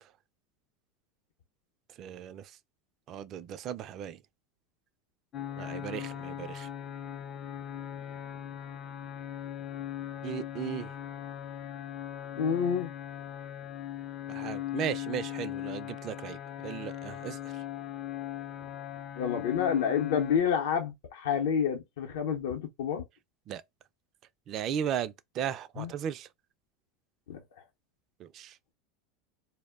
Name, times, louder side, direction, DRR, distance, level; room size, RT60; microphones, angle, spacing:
voice 1, 2.0-2.5 3.1-4.2 5.6-6.7 10.2-10.9 14.3-16.4 16.6-17.4 23.5-23.6 24.5-26.3 28.2-28.5, right 9 dB, 45° right, 0.3 m, -36 dB
sound 1, 5.3-20.4, left 11 dB, 35° left, 0.4 m, -39 dB
voice 2, 12.3-12.9 19.2-23.0 25.8-25.9 27.3-27.4, left 7 dB, 80° left, 0.6 m, -29 dB
2.2 x 2.0 x 3.4 m
supercardioid pair, 115°, 0 cm